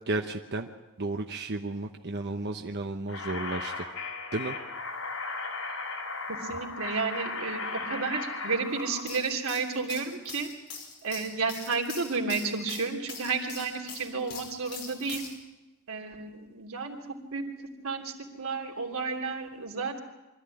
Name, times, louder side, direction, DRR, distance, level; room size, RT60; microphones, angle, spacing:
voice 1, 0.1-0.7 1.0-3.9 4.3-4.6, right 2 dB, 55° right, 4 dB, 1.0 m, -33 dB
sound 1, 3.1-9.0, left 3 dB, 85° left, 5.7 m, -36 dB
voice 2, 6.3-10.5 11.0-15.2 15.9-20.0, right 4 dB, 90° right, 2 dB, 3.3 m, -32 dB
sound 2, 8.9-15.3, left 5 dB, 55° left, 5.7 m, -42 dB
24.5 x 14.0 x 9.9 m, 1.1 s
head